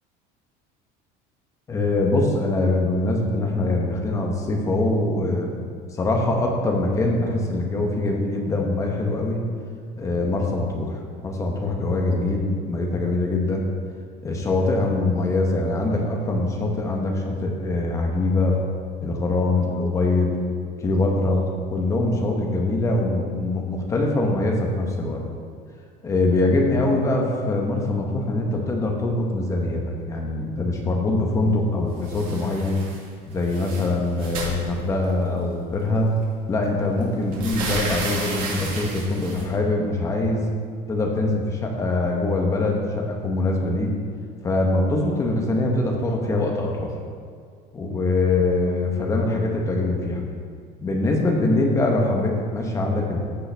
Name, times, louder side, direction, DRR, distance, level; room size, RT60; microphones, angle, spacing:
voice 1, 1.7-5.6 5.9-9.5 10.0-13.7 14.2-18.7 19.0-20.4 20.8-21.4 21.7-25.2 26.0-32.8 33.3-36.1 36.5-40.5 40.9-43.9 44.4-46.9 47.7-50.2 50.8-53.2, left 2 dB, 15° left, 0 dB, 1.0 m, -23 dB
sound 1, 32.0-33.0 33.3-35.3 36.2-36.3 36.7-39.4, right 2 dB, 50° right, 2.4 m, -32 dB
15.0 x 5.3 x 3.4 m, 2.1 s
cardioid pair, 175°, 18 cm